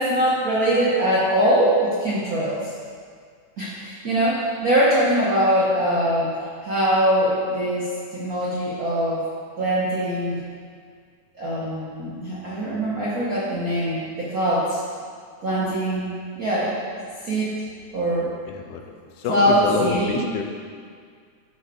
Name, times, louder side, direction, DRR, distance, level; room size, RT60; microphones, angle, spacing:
voice 1, 0.0-2.6 3.6-6.3 6.6-9.2 9.6-10.4 11.3-14.8 15.4-16.1 16.4-16.7 17.2-17.5 17.9-18.3 19.3-20.2, right 1 dB, 70° right, -7 dB, 0.8 m, -22 dB
voice 2, 18.5-18.8 19.2-20.4, left 6 dB, 90° left, 3 dB, 2.1 m, -27 dB
11.0 x 4.6 x 4.4 m, 2.1 s
omnidirectional pair, 3.5 m